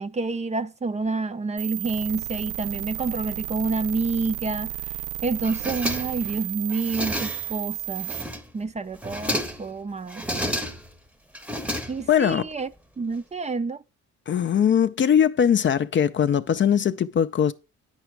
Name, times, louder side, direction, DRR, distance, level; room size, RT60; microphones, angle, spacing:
voice 1, 0.0-5.0 5.2-8.1 8.5-10.5 11.9-12.7 13.0-13.8, right 3 dB, 25° right, 0.5 m, -28 dB
sound 1, 1.6-8.2, right 15 dB, 90° right, 0.6 m, -33 dB
sound 2, 5.4-6.3 6.7-7.6 8.0-8.6 8.9-9.7 10.1-11.0 11.3-12.3, equal, 5° right, 0.8 m, -31 dB
voice 2, 12.1-12.5 14.3-17.5, left 8 dB, 40° left, 0.5 m, -21 dB
8.9 x 5.0 x 4.6 m
cardioid pair, 90°, 30 cm